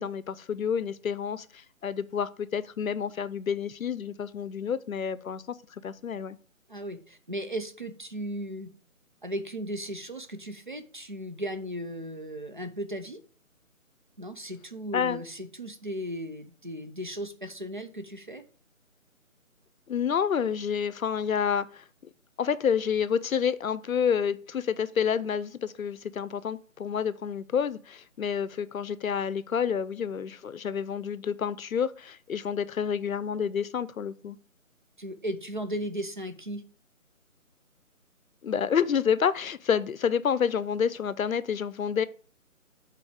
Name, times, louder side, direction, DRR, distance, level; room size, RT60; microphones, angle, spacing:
voice 1, 0.0-6.4 14.9-15.2 19.9-21.8 22.4-34.4 38.4-42.1, left 7 dB, 75° left, 0.6 m, -29 dB
voice 2, 6.7-8.7 9.2-13.2 14.2-18.4 35.0-36.6, equal, 35° right, 0.6 m, -36 dB
6.4 x 4.1 x 4.9 m
hypercardioid pair, 175°, 42 cm